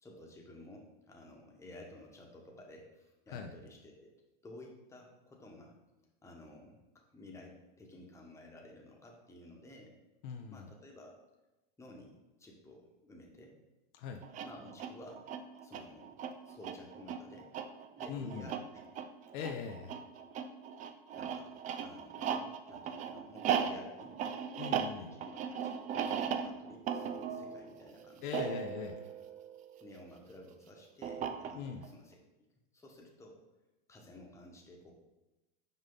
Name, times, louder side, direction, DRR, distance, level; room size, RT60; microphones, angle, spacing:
voice 1, 0.0-4.1 4.4-5.7 6.2-6.8 7.1-9.9 10.5-11.2 11.8-13.5 14.4-15.3 15.6-16.2 16.4-17.5 18.0-19.1 19.9-20.0 21.1-24.2 24.7-28.6 29.8-32.2 32.7-33.4 33.9-34.9, left 1 dB, 10° left, 0 dB, 1.2 m, -54 dB
voice 2, 10.2-10.7 13.9-14.2 18.1-18.5 19.3-20.0 24.6-25.1 28.2-28.9 31.5-31.8, left 6 dB, 55° left, 4 dB, 0.7 m, -41 dB
sound 1, 14.2-30.0 31.0-31.9, right 7 dB, 25° right, 0.4 m, -38 dB
5.5 x 5.0 x 3.9 m, 1.0 s
hypercardioid pair, 115°, 29 cm